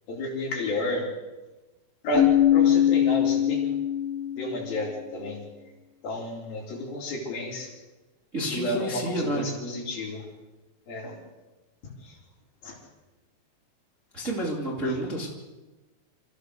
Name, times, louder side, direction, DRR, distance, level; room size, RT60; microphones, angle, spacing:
voice 1, 0.1-1.1 2.0-3.6 4.4-5.4 6.0-7.7 8.4-10.3 10.9-11.2 12.0-12.2 12.6-12.8 14.9-15.0, left 1 dB, 60° left, -2 dB, 5.6 m, -31 dB
Keyboard (musical), 2.1-4.8, left 11 dB, 35° left, 3.2 m, -22 dB
voice 2, 8.3-9.4 14.1-15.3, right 1 dB, 20° right, -2 dB, 2.3 m, -29 dB
27.5 x 15.0 x 6.6 m, 1.1 s
omnidirectional pair, 4.9 m